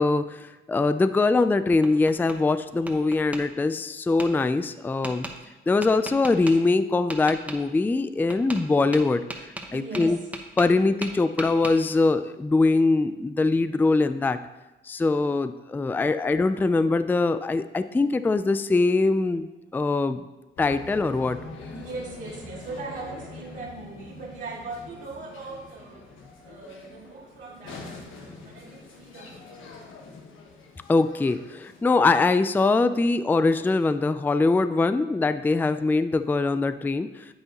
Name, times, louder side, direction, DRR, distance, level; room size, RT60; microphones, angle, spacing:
voice 1, 0.0-5.3 5.7-9.2 9.7-10.2 10.6-14.4 14.9-20.3 20.6-21.4 30.9-37.3, left 3 dB, 10° left, 11 dB, 0.3 m, -22 dB
Tap, 1.3-2.4 2.9-3.4 4.2-4.3 5.0-5.3 5.8-6.5 7.1-7.6 8.3-8.6 8.9-10.8 11.0-11.7, right 1 dB, 5° right, 1.1 m, -36 dB
voice 2, 9.7-10.2 21.7-26.0 26.4-29.6, right 3 dB, 75° right, -6 dB, 2.5 m, -39 dB
sound 1, 20.6-32.4, left 3 dB, 85° left, 1.3 m, -44 dB
9.6 x 8.0 x 2.9 m, 1.1 s
cardioid pair, 90°, 20 cm